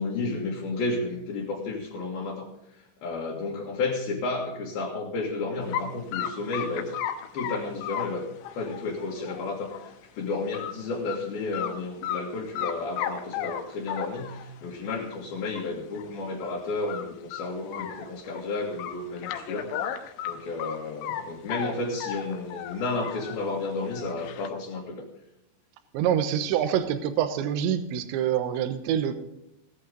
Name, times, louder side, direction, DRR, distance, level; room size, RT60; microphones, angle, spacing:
voice 1, 0.0-2.5 3.0-7.0 7.3-8.2 8.5-9.9 10.2-19.7 20.2-25.0, left 3 dB, 60° left, -3 dB, 3.1 m, -32 dB
sound 1, 5.7-5.9 6.1-9.9 10.3-10.7 11.1-11.2 11.5-12.2 12.6-14.5 15.1-15.2 15.6-15.7 16.0-16.1 16.4-16.6 16.9-18.4 18.8-21.2 21.5-23.4 23.8-24.5, left 10 dB, 80° left, 3.3 m, -34 dB
voice 2, 25.9-29.1, right 9 dB, 75° right, 9 dB, 3.2 m, -26 dB
17.0 x 11.5 x 3.9 m, 0.87 s
omnidirectional pair, 5.6 m